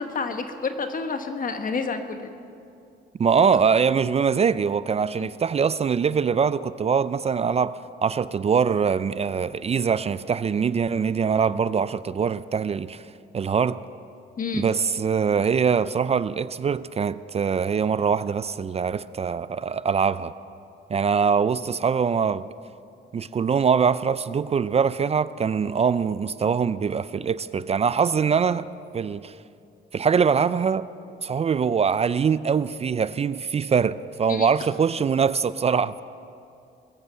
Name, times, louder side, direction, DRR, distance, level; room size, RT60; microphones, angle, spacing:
voice 1, 0.0-2.3 5.2-5.3 14.4-14.7 34.3-34.5, left 4 dB, 45° left, 1.4 m, -29 dB
voice 2, 3.2-13.0 13.3-13.8 14.5-20.3 20.9-22.4 23.1-28.7 28.9-29.3 29.9-30.9 31.2-36.0, right 6 dB, 30° right, 0.4 m, -23 dB
21.0 x 8.2 x 7.6 m
cardioid pair, 90°, 20 cm